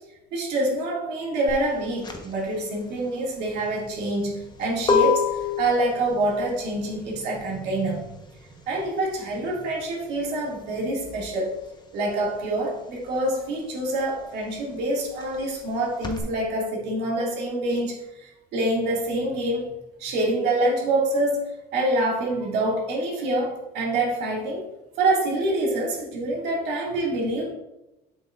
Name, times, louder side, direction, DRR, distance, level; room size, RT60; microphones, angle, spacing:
voice 1, 0.3-8.1 8.7-11.5 11.9-19.7 20.0-24.7 25.0-27.5, right 1 dB, 80° right, -3 dB, 2.1 m, -26 dB
sound 1, 1.5-11.7 12.0-16.2, left 6 dB, 25° left, 0.9 m, -29 dB
7.1 x 6.5 x 2.4 m, 0.95 s
cardioid pair, 110°, 17 cm